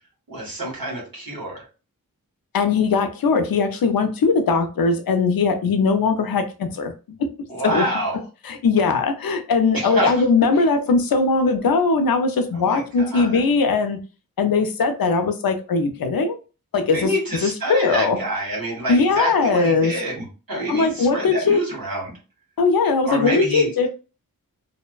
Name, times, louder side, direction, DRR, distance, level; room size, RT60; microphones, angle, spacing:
voice 1, 0.3-1.6 7.5-8.2 9.7-10.2 12.6-13.4 16.9-22.2 23.0-23.9, right 1 dB, 75° right, 1.4 m, -27 dB
voice 2, 2.5-7.9 8.1-14.0 14.4-16.4 16.7-17.1 17.4-18.2 18.9-20.0 20.7-21.6 22.6-23.9, left 4 dB, 80° left, 0.5 m, -20 dB
2.5 x 2.1 x 2.3 m
cardioid pair, 45°, 35 cm